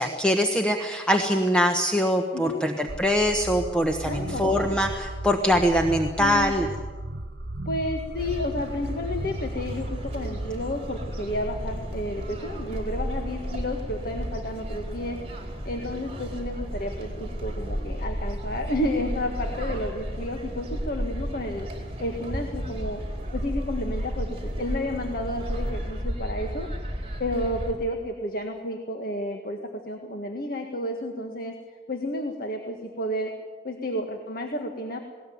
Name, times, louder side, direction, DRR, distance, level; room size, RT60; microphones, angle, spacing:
voice 1, 0.0-6.7, equal, 5° left, 3 dB, 1.1 m, -23 dB
sound 1, 2.9-13.8, right 1 dB, 85° right, 1.2 m, -36 dB
voice 2, 4.0-4.7 6.2-6.5 7.7-15.2 15.7-21.7 22.0-23.0 23.3-26.7 27.2-29.6 29.9-31.5 31.9-33.3 33.6-35.0, left 1 dB, 55° left, 3 dB, 1.7 m, -31 dB
sound 2, 8.2-27.7, equal, 35° right, 4.2 m, -33 dB
19.5 x 19.0 x 9.4 m, 1.5 s
head